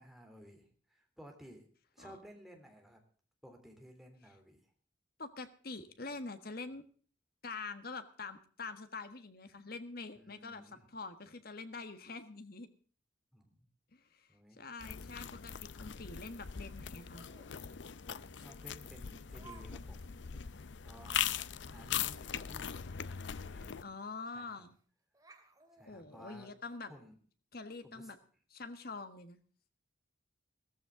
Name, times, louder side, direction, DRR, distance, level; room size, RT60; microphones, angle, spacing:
voice 1, 0.0-1.6 1.9-3.0 3.4-4.6 10.2-10.9 13.3-13.7 14.3-14.6 18.1-20.4 20.8-21.3 21.7-22.8 23.0-23.9 24.3-24.7 25.7-26.5 26.9-27.1 27.8-28.1, equal, ahead, 3 dB, 3.4 m, -56 dB
voice 2, 5.2-6.8 7.4-10.6 10.9-12.7 13.9-14.3 14.6-17.3 23.8-24.8 25.9-26.9 27.5-28.2 28.5-29.4, left 3 dB, 50° left, 10 dB, 1.5 m, -45 dB
sound 1, 14.8-23.8, left 9 dB, 70° left, 0.6 m, -40 dB
Laughter, 17.1-17.5 18.4-18.5 19.4-19.7 19.9-20.1 20.6-20.7 21.0-21.1 23.1-23.2 23.5-23.6 24.5-24.8 25.1-26.8, right 4 dB, 20° right, 2.5 m, -58 dB
16.5 x 14.5 x 3.8 m, 0.43 s
head